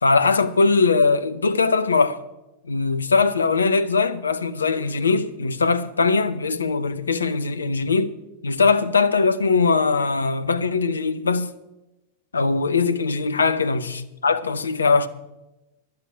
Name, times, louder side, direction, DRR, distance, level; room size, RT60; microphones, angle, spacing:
voice 1, 0.0-2.2 2.7-8.1 8.4-11.5 12.3-15.1, left 4 dB, 75° left, 0.8 m, -21 dB
11.5 x 7.7 x 9.5 m
figure-of-eight pair, 90°, 0 cm